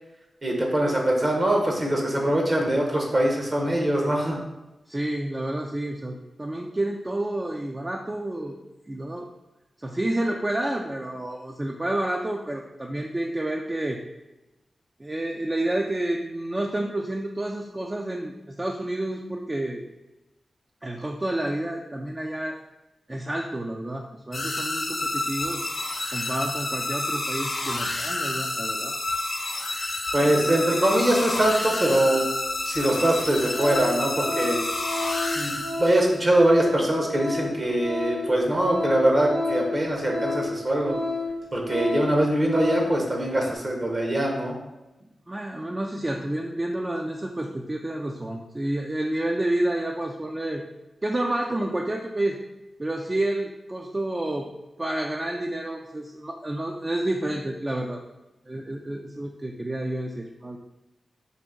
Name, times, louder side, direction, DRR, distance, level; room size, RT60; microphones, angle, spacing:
voice 1, 0.4-4.4 30.1-32.3 32.6-34.6 35.3-40.9 41.5-44.6, right 1 dB, 40° right, 0 dB, 0.8 m, -23 dB
voice 2, 4.9-8.6 8.9-9.3 9.8-14.0 15.0-19.8 20.8-22.6 23.1-25.7 26.1-29.0 45.3-50.6 51.0-52.4 52.8-54.5 54.8-58.0 58.5-60.6, right 1 dB, 25° right, 0 dB, 0.3 m, -29 dB
sound 1, 24.3-36.2, left 2 dB, 55° left, 0.7 m, -29 dB
Organ, 32.4-32.5 33.1-33.2 33.5-43.1 43.4-43.5, left 2 dB, 70° right, 1.5 m, -31 dB
3.9 x 2.5 x 3.7 m, 1.0 s
cardioid pair, 65°, 0 cm